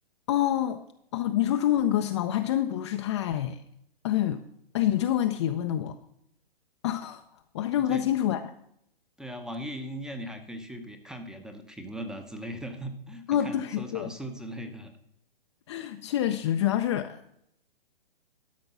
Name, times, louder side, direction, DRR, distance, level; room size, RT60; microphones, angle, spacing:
voice 1, 0.3-0.8 1.1-3.6 4.0-4.4 4.7-6.0 6.8-7.2 7.5-8.5 13.3-14.1 15.7-17.3, left 11 dB, 30° left, 0.4 m, -27 dB
voice 2, 9.2-14.9, equal, ahead, 0.7 m, -39 dB
12.5 x 5.2 x 5.9 m
hypercardioid pair, 130°, 29 cm